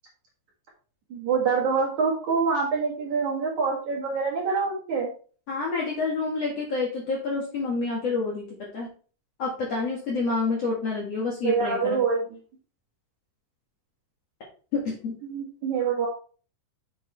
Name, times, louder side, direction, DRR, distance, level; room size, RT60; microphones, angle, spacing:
voice 1, 1.1-5.1 11.4-12.2 15.2-16.1, right 5 dB, 55° right, -3 dB, 2.5 m, -25 dB
voice 2, 5.5-8.4 8.7-8.9 9.4-12.0 14.7-15.1, left 3 dB, 50° left, -4 dB, 2.0 m, -28 dB
7.7 x 7.0 x 3.3 m, 0.40 s
omnidirectional pair, 5.0 m